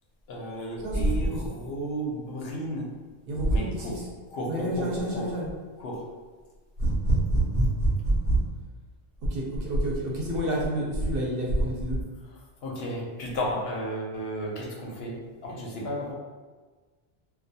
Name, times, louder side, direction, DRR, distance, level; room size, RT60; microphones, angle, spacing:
voice 1, 0.3-2.9 3.5-4.0 4.3-5.3 5.8-6.1 12.6-16.1, equal, 80° left, -2 dB, 0.8 m, -33 dB
voice 2, 0.8-1.4 3.3-4.1 4.5-5.5 6.8-8.4 9.2-12.0, right 1 dB, 70° right, -3 dB, 0.8 m, -26 dB
2.2 x 2.2 x 2.7 m, 1.4 s
omnidirectional pair, 1.1 m